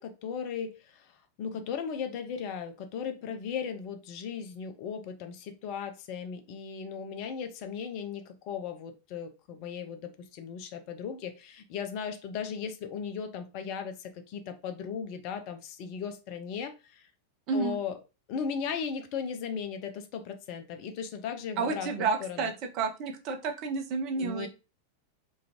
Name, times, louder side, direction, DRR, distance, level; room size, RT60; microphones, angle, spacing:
voice 1, 0.0-17.1 17.5-18.0 18.3-22.5 24.2-24.5, left 7 dB, 45° left, 0.4 m, -37 dB
voice 2, 17.5-17.8 21.6-24.5, right 4 dB, 40° right, 0.5 m, -30 dB
2.4 x 2.3 x 2.9 m
figure-of-eight pair, 90°, 0 cm